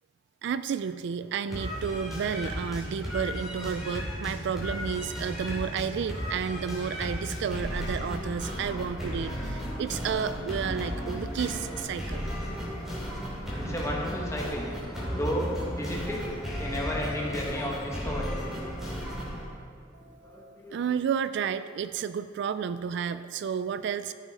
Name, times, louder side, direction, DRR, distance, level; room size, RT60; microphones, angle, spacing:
voice 1, 0.4-12.2 20.0-24.1, right 7 dB, 60° right, 13 dB, 0.3 m, -32 dB
voice 2, 1.2-1.6 12.2-13.2 13.6-14.7 15.1-15.5 15.8-16.3 16.6-18.4 20.2-20.9, equal, 15° left, -2 dB, 1.7 m, -34 dB
sound 1, 1.5-19.5, equal, ahead, 2.8 m, -34 dB
14.5 x 8.2 x 3.8 m, 2.2 s
head